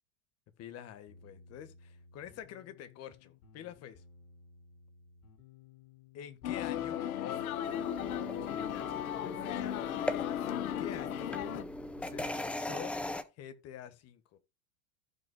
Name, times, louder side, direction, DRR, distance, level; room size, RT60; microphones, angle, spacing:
voice 1, 0.6-4.0 6.1-7.6 8.2-9.8 10.4-11.4 12.0-12.9 13.4-14.4, left 10 dB, 35° left, 1.4 m, -47 dB
sound 1, 1.1-12.4, left 4 dB, 70° left, 3.4 m, -57 dB
sound 2, 6.4-11.6, left 11 dB, 90° left, 1.0 m, -36 dB
sound 3, 7.6-13.2, left 1 dB, 5° left, 0.4 m, -39 dB
15.0 x 5.5 x 2.2 m
supercardioid pair, 125°, 42 cm